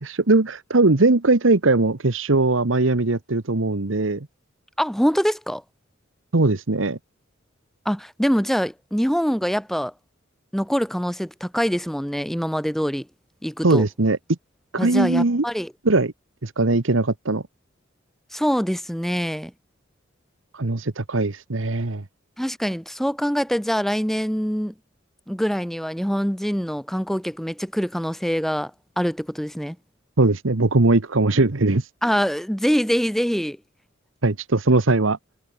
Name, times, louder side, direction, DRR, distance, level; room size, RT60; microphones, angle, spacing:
voice 1, 0.0-4.3 6.3-7.0 13.6-14.2 14.7-15.4 15.8-16.1 16.4-17.4 20.5-22.0 30.2-31.9 34.2-35.2, right 2 dB, 85° right, 1.3 m, -20 dB
voice 2, 4.8-5.6 7.9-9.9 10.5-13.1 13.4-13.8 14.8-15.7 18.3-19.5 22.4-24.7 25.3-28.7 29.0-29.8 32.0-33.6, equal, ahead, 1.7 m, -24 dB
head